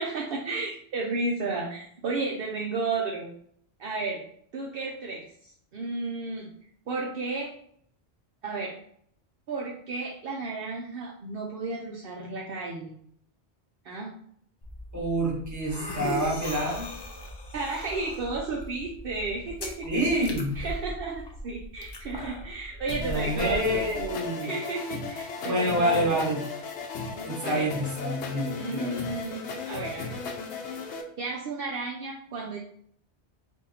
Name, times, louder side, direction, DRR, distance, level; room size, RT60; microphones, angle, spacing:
voice 1, 0.0-3.3 3.8-4.2 4.5-6.5 6.9-7.5 8.4-8.8 9.5-12.9 13.8-14.1 17.5-20.3 20.5-23.9 24.4-26.3 27.4-27.7 28.6-30.1 31.2-32.6, right 3 dB, 65° right, -2 dB, 0.7 m, -33 dB
sound 1, 14.6-24.1, left 1 dB, 35° left, 0.4 m, -38 dB
voice 2, 14.9-16.9 19.8-20.6 23.0-24.5 25.4-26.4 27.2-29.0, equal, 15° right, -2 dB, 1.0 m, -27 dB
sound 2, 22.9-31.0, left 4 dB, 80° left, 0.9 m, -36 dB
3.8 x 2.7 x 4.1 m, 0.65 s
omnidirectional pair, 1.1 m